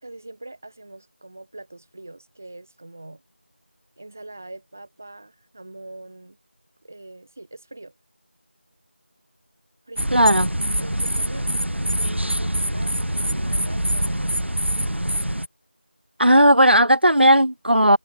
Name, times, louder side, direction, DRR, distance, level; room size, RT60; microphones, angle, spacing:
voice 1, 0.0-3.2 4.0-6.4 6.8-7.9 9.9-10.3 10.8-11.5 11.9-14.4, right 2 dB, 10° right, 5.4 m, -42 dB
sound 1, 10.0-15.5, equal, 80° right, 1.5 m, -24 dB
voice 2, 10.1-10.5 16.2-18.0, equal, 60° right, 1.0 m, -15 dB
figure-of-eight pair, 175°, 6 cm